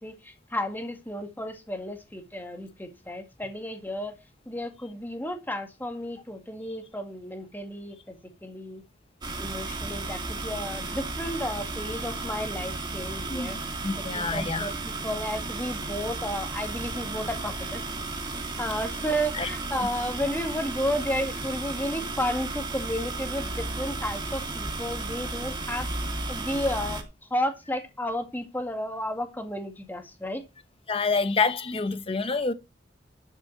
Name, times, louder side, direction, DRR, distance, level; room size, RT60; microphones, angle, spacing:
voice 1, 0.0-4.2 4.5-8.2 8.4-8.8 9.4-13.6 13.9-17.8 18.6-25.9 26.3-27.0 27.3-30.4, equal, 10° left, 2.0 m, -32 dB
sound 1, 9.2-27.0, right 3 dB, 25° right, 2.4 m, -34 dB
voice 2, 13.8-14.7 19.3-19.5 30.9-32.5, left 4 dB, 30° left, 1.0 m, -27 dB
12.0 x 6.2 x 5.9 m
head